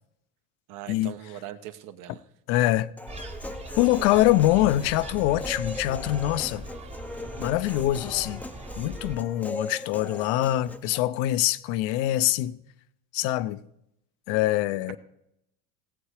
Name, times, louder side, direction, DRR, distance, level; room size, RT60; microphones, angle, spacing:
voice 1, 0.7-2.2 14.9-15.0, right 12 dB, 55° right, 1.1 m, -40 dB
voice 2, 2.5-2.9 3.8-6.7 7.4-8.4 8.8-12.6 13.1-13.6 14.3-15.0, left 15 dB, 75° left, 0.8 m, -24 dB
Human voice, 3.0-11.0, left 2 dB, 5° left, 0.6 m, -39 dB
sound 1, 3.1-9.2, right 1 dB, 15° right, 1.0 m, -40 dB
17.5 x 8.0 x 4.9 m
supercardioid pair, 115°, 37 cm